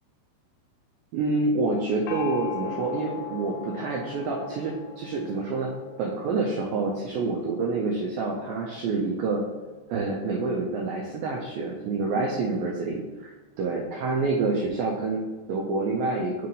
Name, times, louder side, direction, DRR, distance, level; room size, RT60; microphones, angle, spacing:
voice 1, 1.1-9.4 9.9-13.3 13.6-16.5, right 3 dB, 90° right, -1 dB, 2.0 m, -27 dB
Gong, 2.1-5.6, left 12 dB, 85° left, 2.3 m, -38 dB
Gong 2, 2.2-14.1, equal, 45° right, 1.5 m, -47 dB
6.5 x 2.8 x 5.3 m, 1.3 s
omnidirectional pair, 5.0 m